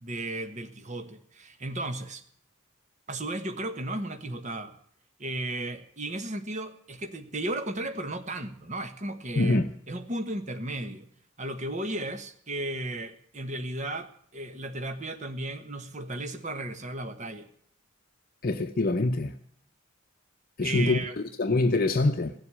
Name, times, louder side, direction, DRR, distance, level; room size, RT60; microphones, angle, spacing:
voice 1, 0.0-2.2 3.1-4.8 5.2-11.1 11.4-17.5 20.6-21.2, right 1 dB, 35° right, 1.3 m, -35 dB
voice 2, 9.4-9.7 18.4-19.3 20.6-21.0 21.4-22.3, left 2 dB, 45° left, 0.8 m, -24 dB
17.0 x 7.9 x 8.6 m
head